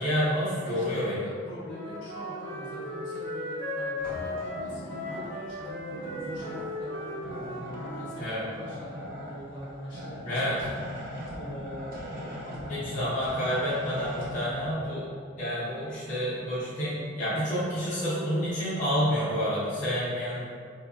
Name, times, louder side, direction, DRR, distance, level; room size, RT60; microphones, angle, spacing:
voice 1, 0.0-1.3 8.2-8.4 10.2-10.6 12.7-15.0 15.4-20.4, equal, 45° left, -11 dB, 0.7 m, -29 dB
voice 2, 0.6-10.5 11.3-13.2 18.0-18.3, equal, 70° left, -8 dB, 1.1 m, -42 dB
Wind instrument woodwind instrument, 1.6-8.2, left 1 dB, 90° left, 0.7 m, -36 dB
sound 1, 4.0-14.7, equal, 50° right, 0.7 m, -40 dB
4.2 x 2.7 x 2.3 m, 2.2 s
head